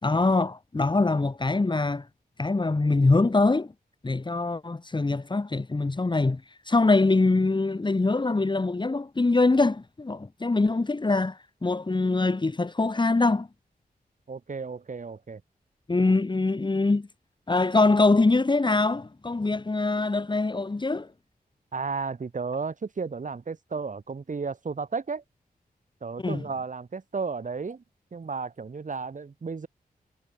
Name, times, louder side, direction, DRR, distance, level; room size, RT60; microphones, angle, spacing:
voice 1, 0.0-2.1 2.4-3.7 4.0-13.5 15.9-17.1 17.5-21.1 26.2-26.4, left 3 dB, 30° left, 3.7 m, -23 dB
voice 2, 14.3-15.4 21.7-25.2 26.0-27.8 28.1-29.7, right 4 dB, 55° right, 7.3 m, -33 dB
wide cardioid pair, 120°, 16 cm